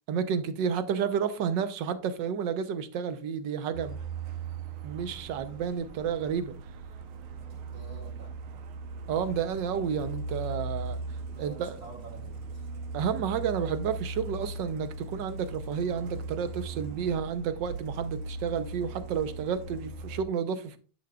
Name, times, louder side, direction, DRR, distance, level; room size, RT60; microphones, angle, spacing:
voice 1, 0.1-4.0 4.8-6.5 9.1-11.0 11.4-11.8 12.9-20.8, right 7 dB, 70° right, 1.2 m, -31 dB
Truck, 3.7-20.2, right 3 dB, 90° right, 1.7 m, -39 dB
voice 2, 7.6-8.3 11.3-12.7, right 2 dB, 45° right, 3.0 m, -48 dB
10.0 x 6.1 x 2.3 m
omnidirectional pair, 2.3 m